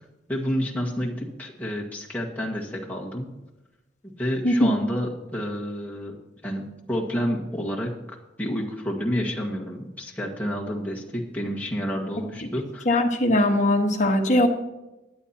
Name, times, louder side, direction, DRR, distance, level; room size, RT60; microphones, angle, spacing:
voice 1, 0.3-3.3 4.2-6.2 6.4-7.9 8.4-12.8, equal, 10° left, -3 dB, 1.7 m, -29 dB
voice 2, 12.9-14.5, left 1 dB, 45° left, 2 dB, 1.3 m, -20 dB
21.0 x 8.3 x 2.9 m, 1.0 s
head